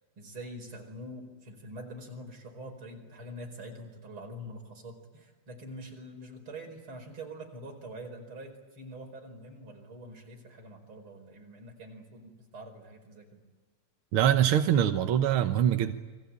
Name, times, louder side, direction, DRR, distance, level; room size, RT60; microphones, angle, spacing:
voice 1, 0.2-13.4, right 1 dB, 40° right, 5.6 m, -45 dB
voice 2, 14.1-15.9, right 10 dB, 60° right, 1.5 m, -24 dB
29.5 x 22.5 x 8.7 m
omnidirectional pair, 3.5 m